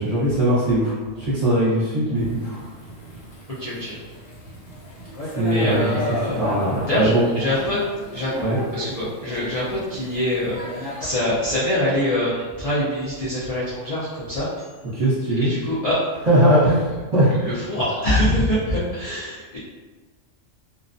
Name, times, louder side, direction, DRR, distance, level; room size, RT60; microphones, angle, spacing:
voice 1, 0.0-2.6 5.2-5.8 6.4-7.3 8.4-8.6 14.9-15.5 16.3-17.3, right 1 dB, 35° right, -11 dB, 0.9 m, -20 dB
Thunder / Rain, 2.2-11.1, equal, 75° left, 1.1 m, -34 dB
voice 2, 3.6-4.0 5.4-6.5 6.9-7.8 8.1-8.3 8.7-14.5 15.4-16.0 17.4-19.6, left 1 dB, 55° left, -9 dB, 0.4 m, -24 dB
2.4 x 2.2 x 2.5 m, 1.3 s
omnidirectional pair, 1.3 m